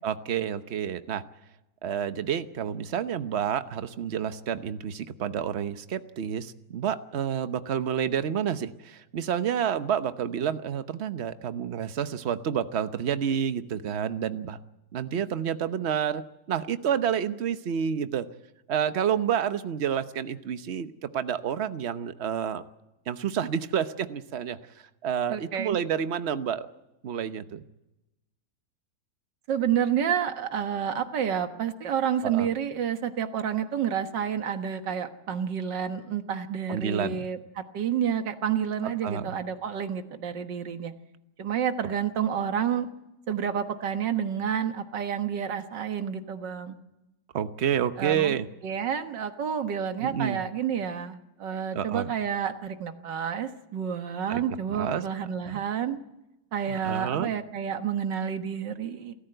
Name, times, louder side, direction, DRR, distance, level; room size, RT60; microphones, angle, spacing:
voice 1, 0.0-1.2 1.8-14.6 14.9-18.3 18.7-22.6 23.1-24.6 25.0-26.7 27.0-27.6 32.2-32.5 36.7-37.3 39.0-39.4 47.3-48.5 50.0-50.4 51.7-52.1 54.3-54.4 54.7-55.0 55.4-55.6 56.7-57.3, right 8 dB, 45° right, 11 dB, 1.0 m, -29 dB
voice 2, 25.3-25.8 29.5-40.9 41.4-42.9 43.3-46.8 48.0-48.3 48.6-56.0 56.5-59.1, right 8 dB, 80° right, 8 dB, 2.0 m, -29 dB
28.5 x 14.0 x 7.9 m, 0.95 s
omnidirectional pair, 1.9 m